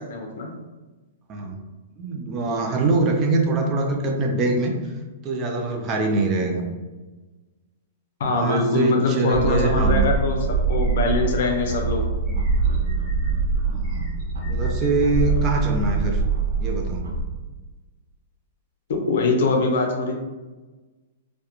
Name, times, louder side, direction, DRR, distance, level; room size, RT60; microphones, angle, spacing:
voice 1, 0.1-0.5 8.2-12.0 18.9-20.1, left 3 dB, 65° left, 2 dB, 0.5 m, -23 dB
voice 2, 2.0-4.7 5.2-6.6 8.3-10.1 13.6-14.2 14.5-16.2 16.6-17.0, right 3 dB, 25° right, 2 dB, 0.4 m, -23 dB
sound 1, 9.3-17.2, right 4 dB, 85° right, 0.5 m, -24 dB
sound 2, 10.7-11.7 12.2-13.3 13.8-14.9, left 1 dB, 45° right, 1.0 m, -42 dB
2.3 x 2.1 x 2.8 m, 1.2 s
hypercardioid pair, 150°, 0 cm